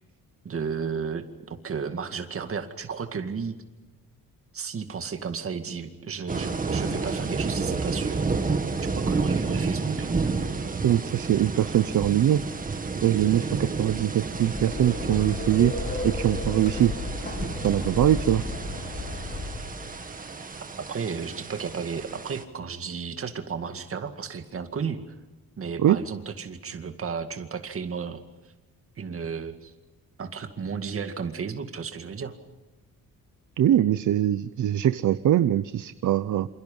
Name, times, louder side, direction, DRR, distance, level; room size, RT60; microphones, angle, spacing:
voice 1, 0.4-3.6 4.5-8.2 8.9-10.1 20.9-25.0 25.6-28.2 29.0-29.7 30.2-32.4, right 6 dB, 40° right, 7 dB, 2.2 m, -33 dB
sound 1, 6.3-22.4, right 4 dB, 25° right, 2.1 m, -31 dB
voice 2, 10.8-12.4 13.0-15.7 16.0-16.9 17.6-18.4 25.8-26.0 33.6-36.5, right 11 dB, 60° right, 14 dB, 0.8 m, -22 dB
sound 2, 14.2-20.1, left 2 dB, 30° left, 4.5 m, -33 dB
27.5 x 27.5 x 5.5 m, 1.2 s
wide cardioid pair, 165°, 35 cm